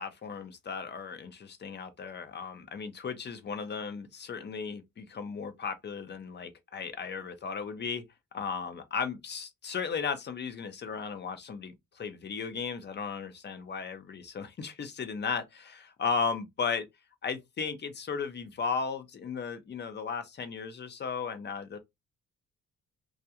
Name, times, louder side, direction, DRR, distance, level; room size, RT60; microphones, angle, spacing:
voice 1, 0.0-8.0 8.3-16.9 17.2-21.8, left 5 dB, 35° left, 0.6 m, -35 dB
2.4 x 2.2 x 2.7 m
cardioid pair, 90°, 30 cm